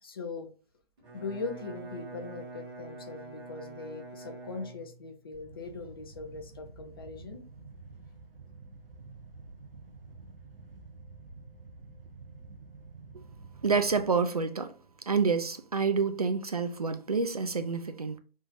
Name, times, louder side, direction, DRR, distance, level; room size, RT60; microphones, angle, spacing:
voice 1, 0.0-0.5 1.1-7.4, left 4 dB, 25° left, 0.5 m, -40 dB
Bowed string instrument, 1.0-5.2, right 3 dB, 25° right, 1.3 m, -45 dB
sound 1, 5.3-14.1, right 3 dB, 65° right, 1.1 m, -49 dB
voice 2, 13.6-14.7 15.1-18.2, right 5 dB, 40° right, 0.4 m, -28 dB
5.2 x 3.6 x 2.6 m
figure-of-eight pair, 140°, 30 cm